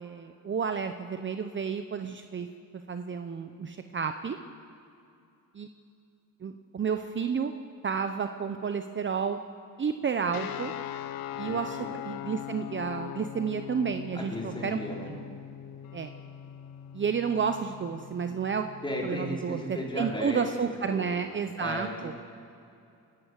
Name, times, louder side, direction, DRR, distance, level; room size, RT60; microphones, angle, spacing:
voice 1, 0.0-2.5 2.9-4.4 5.5-5.7 6.4-7.5 7.8-9.4 9.8-10.7 11.4-11.8 12.0-14.8 15.1-15.2 15.9-16.1 16.9-18.7 19.0-22.1, right 6 dB, 30° right, 7 dB, 0.8 m, -31 dB
sound 1, 10.3-19.3, left 11 dB, 75° left, 1.0 m, -41 dB
voice 2, 11.3-11.9 14.1-15.1 18.8-20.4 20.9-22.1, left 1 dB, 15° left, -2 dB, 4.5 m, -36 dB
29.5 x 11.5 x 8.2 m, 2.6 s
cardioid pair, 120°, 36 cm